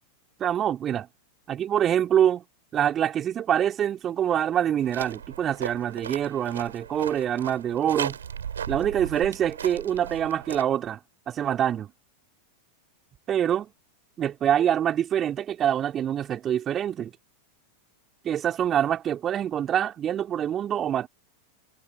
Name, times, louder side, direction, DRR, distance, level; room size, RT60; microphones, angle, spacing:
voice 1, 0.4-1.1 1.5-2.4 2.7-8.2 8.7-11.0 11.3-11.9 13.3-13.7 14.2-17.1 18.2-21.1, right 10 dB, 25° right, 3.0 m, -25 dB
sound 1, 4.8-10.6, right 8 dB, 65° right, 6.2 m, -37 dB
figure-of-eight pair, 90°, 0 cm